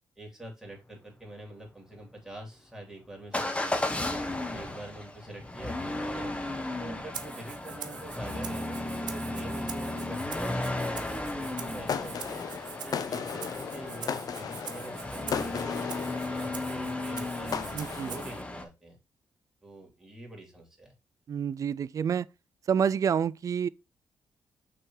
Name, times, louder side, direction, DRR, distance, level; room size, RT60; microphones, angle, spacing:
voice 1, 0.2-4.1 4.5-6.3 6.8-12.4 12.8-17.6 18.0-19.0 19.6-20.9, right 1 dB, 5° right, 3.0 m, -45 dB
Motor vehicle (road) / Engine starting / Accelerating revving vroom, 3.3-18.6, left 2 dB, 15° left, 1.1 m, -35 dB
Rattle (instrument), 7.1-18.4, right 8 dB, 75° right, 0.7 m, -45 dB
sound 1, 11.4-18.4, left 7 dB, 60° left, 0.6 m, -37 dB
voice 2, 17.7-18.1 21.3-22.3 22.7-23.7, right 7 dB, 45° right, 0.3 m, -28 dB
6.0 x 3.5 x 4.7 m
cardioid pair, 90°, 8 cm